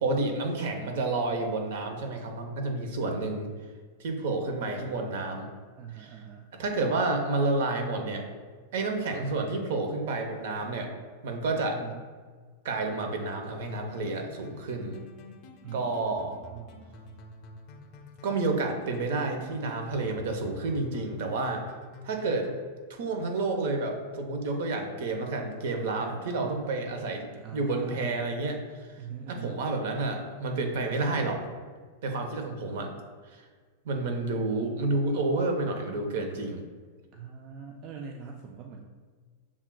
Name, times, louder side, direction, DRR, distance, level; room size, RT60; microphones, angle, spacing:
voice 1, 0.0-3.5 4.0-5.5 6.0-6.2 6.6-8.2 8.7-10.9 11.2-11.8 12.6-15.0 15.7-16.3 18.2-21.6 22.0-22.5 22.9-28.6 29.3-31.4 32.0-33.0 33.8-36.6, right 3 dB, 70° right, 4 dB, 0.8 m, -30 dB
voice 2, 5.8-6.5 11.7-12.1 15.6-16.9 26.0-26.6 27.4-28.2 29.0-29.6 37.1-38.8, right 7 dB, 45° right, 2 dB, 0.4 m, -43 dB
sound 1, 13.3-22.6, left 3 dB, 45° left, 0.5 m, -49 dB
7.1 x 2.4 x 2.3 m, 1.5 s
hypercardioid pair, 130°, 0 cm